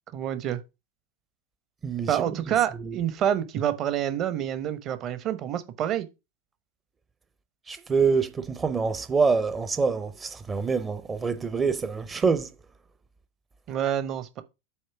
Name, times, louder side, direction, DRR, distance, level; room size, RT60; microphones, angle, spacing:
voice 1, 0.1-0.6 2.1-6.1 13.7-14.4, right 10 dB, 40° right, 1.0 m, -27 dB
voice 2, 1.8-2.2 2.8-3.0 7.7-12.5, right 5 dB, 20° right, 0.7 m, -26 dB
7.9 x 3.2 x 5.7 m
figure-of-eight pair, 90°, 0 cm